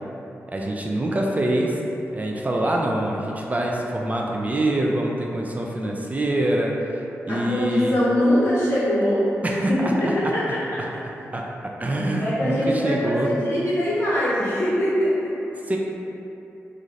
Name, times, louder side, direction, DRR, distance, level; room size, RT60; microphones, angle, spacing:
voice 1, 0.5-1.8 2.1-8.0 9.4-10.3 10.8-10.9 11.3-13.3 15.6-15.8, right 1 dB, 30° right, -1 dB, 0.3 m, -25 dB
voice 2, 7.3-9.2 9.5-10.4 12.1-15.2, equal, 70° left, -13 dB, 0.8 m, -22 dB
2.5 x 2.5 x 3.1 m, 2.9 s
cardioid pair, 50°, 5 cm